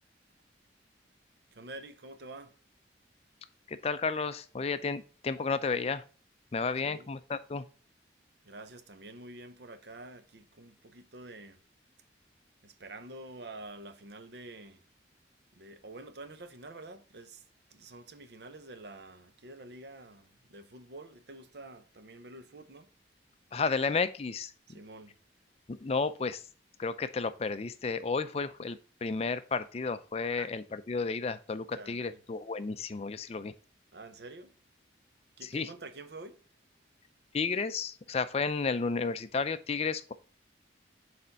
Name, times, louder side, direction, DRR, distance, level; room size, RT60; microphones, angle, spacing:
voice 1, 1.5-2.6 6.8-7.1 8.4-11.6 12.6-14.8 15.5-17.4 17.7-22.9 24.7-25.2 30.4-30.5 31.7-32.2 33.9-34.5 35.4-36.4, right 2 dB, 65° right, 0.8 m, -48 dB
voice 2, 3.7-6.0 6.5-7.6 23.5-24.5 25.7-26.5 26.8-33.5 35.4-35.7 37.3-40.1, left 4 dB, 35° left, 0.4 m, -32 dB
6.7 x 4.3 x 4.0 m
head